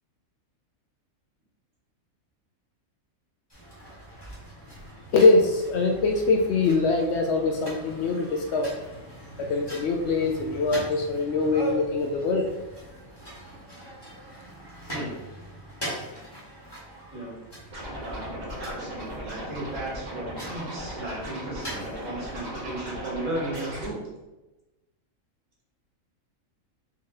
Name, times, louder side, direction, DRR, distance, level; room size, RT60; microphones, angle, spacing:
sound 1, 3.5-22.3, right 1 dB, 20° left, 1.6 m, -41 dB
voice 1, 5.1-8.7 9.4-12.5, left 3 dB, 65° left, 3 dB, 0.7 m, -23 dB
Scratching (performance technique), 17.7-23.9, equal, 35° right, 1.0 m, -37 dB
voice 2, 18.6-24.0, right 1 dB, 80° right, -3 dB, 1.9 m, -35 dB
4.6 x 2.9 x 3.7 m, 1.1 s
omnidirectional pair, 1.4 m